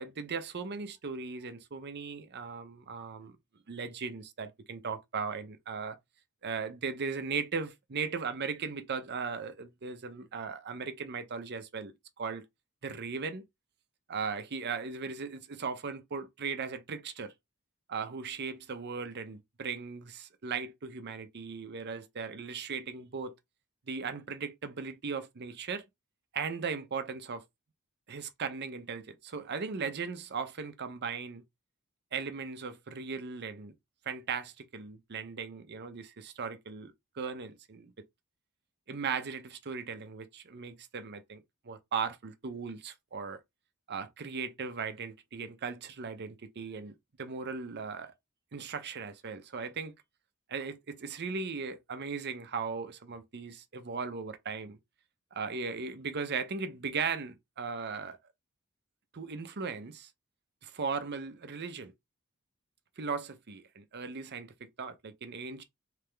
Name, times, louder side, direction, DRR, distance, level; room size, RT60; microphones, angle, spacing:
voice 1, 0.0-3.4 3.7-6.0 6.4-12.4 12.8-13.4 14.1-17.3 17.9-23.4 23.9-25.8 26.3-27.4 28.1-31.4 32.1-33.7 34.1-37.9 38.9-43.4 43.9-46.9 47.2-48.1 48.5-49.9 50.5-54.8 55.3-58.2 59.1-60.1 60.6-61.9 63.0-65.6, right 5 dB, 55° right, 0.7 m, -37 dB
3.4 x 3.3 x 3.4 m
head